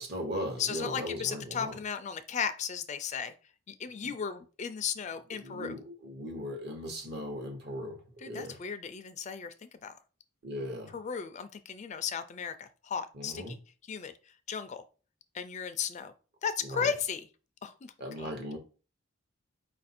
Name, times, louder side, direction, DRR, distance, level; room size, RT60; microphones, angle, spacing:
voice 1, 0.0-1.8 4.0-4.1 5.3-8.6 10.4-11.0 13.1-13.6 16.6-16.9 18.0-18.6, equal, 55° right, 1.0 m, -38 dB
voice 2, 0.6-3.3 3.7-5.8 8.2-9.5 9.8-9.9 10.9-13.6 13.9-14.1 14.5-14.8 15.3-16.1 16.4-17.2 17.6-17.9 18.2-18.3, left 7 dB, 35° left, 0.3 m, -35 dB
4.8 x 2.5 x 4.2 m
head